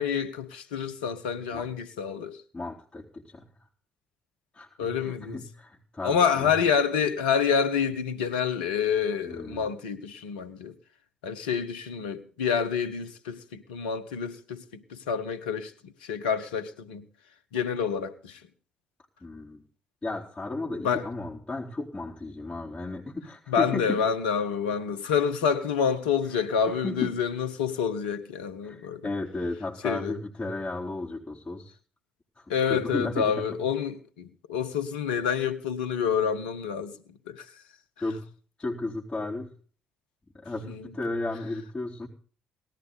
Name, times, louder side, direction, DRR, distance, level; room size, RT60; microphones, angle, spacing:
voice 1, 0.0-2.4 4.8-5.4 6.0-10.7 11.2-17.1 17.5-18.4 20.8-21.1 23.5-29.1 29.8-30.2 32.5-37.0 37.3-37.6 40.6-40.9, left 7 dB, 80° left, 1.2 m, -28 dB
voice 2, 2.5-3.5 4.5-6.5 9.2-9.7 19.2-19.6 20.0-24.0 26.7-27.1 28.6-31.7 32.4-33.6 38.0-38.2 38.6-39.5 40.3-42.1, left 2 dB, 25° left, 4.1 m, -34 dB
19.0 x 13.0 x 4.1 m
hypercardioid pair, 45°, 5 cm